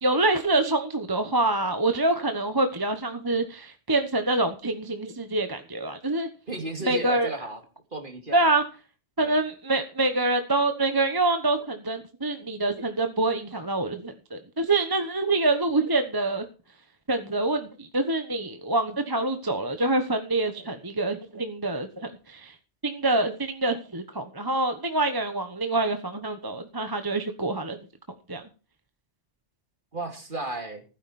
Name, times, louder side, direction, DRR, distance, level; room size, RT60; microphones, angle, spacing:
voice 1, 0.0-6.3 6.9-7.3 8.3-8.6 9.2-16.4 17.1-22.5 22.8-27.8 28.3-28.4, right 2 dB, 20° right, 7 dB, 1.1 m, -26 dB
voice 2, 6.5-7.6 7.9-8.5 9.2-9.4 29.9-30.8, right 2 dB, 45° right, 5 dB, 3.0 m, -34 dB
15.5 x 9.8 x 4.2 m, 0.35 s
omnidirectional pair, 1.2 m